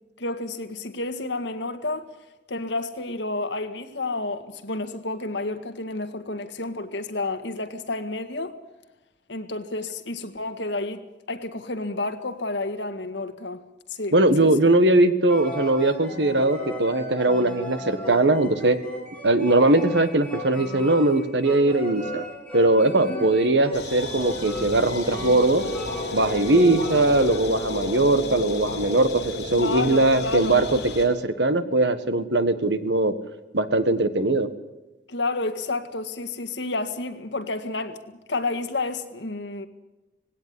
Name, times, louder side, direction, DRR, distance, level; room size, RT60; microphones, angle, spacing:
voice 1, 0.2-2.1 2.5-8.6 9.3-11.0 11.3-13.6 13.9-14.5 23.1-23.3 29.6-30.6 35.1-39.7, left 2 dB, 80° left, 1.9 m, -30 dB
voice 2, 14.1-18.8 19.2-22.2 22.5-25.6 26.1-33.1 33.5-34.5, right 2 dB, 75° right, 1.6 m, -20 dB
sound 1, 15.3-27.4, equal, 5° left, 4.7 m, -36 dB
sound 2, 23.7-31.1, left 2 dB, 65° left, 6.3 m, -32 dB
19.0 x 17.0 x 9.7 m
head